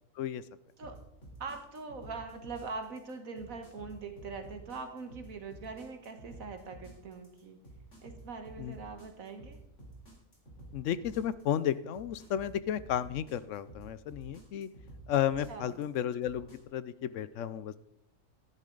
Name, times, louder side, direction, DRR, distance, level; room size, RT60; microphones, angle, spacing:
sound 1, 0.8-16.6, right 2 dB, 50° left, 3.9 m, -51 dB
voice 1, 1.4-7.6 8.0-9.6 15.5-15.8, right 4 dB, 60° right, 6 dB, 1.7 m, -42 dB
voice 2, 10.7-14.7 15.1-17.8, left 10 dB, 65° left, 16 dB, 0.8 m, -33 dB
13.0 x 11.0 x 3.9 m, 0.78 s
omnidirectional pair, 1.6 m